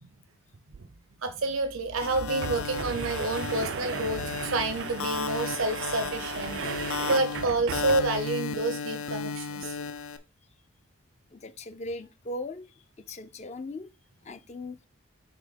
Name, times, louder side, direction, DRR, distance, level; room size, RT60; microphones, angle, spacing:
sound 1, 0.7-0.8 1.1-1.2 1.9-8.3, right 7 dB, 60° right, 0.3 m, -37 dB
voice 1, 1.2-9.8, right 2 dB, 90° right, 0.7 m, -29 dB
sound 2, 2.0-10.2, left 5 dB, 80° left, 0.6 m, -34 dB
voice 2, 11.3-13.9 14.2-14.8, left 2 dB, 30° left, 0.4 m, -39 dB
5.6 x 3.4 x 5.2 m
head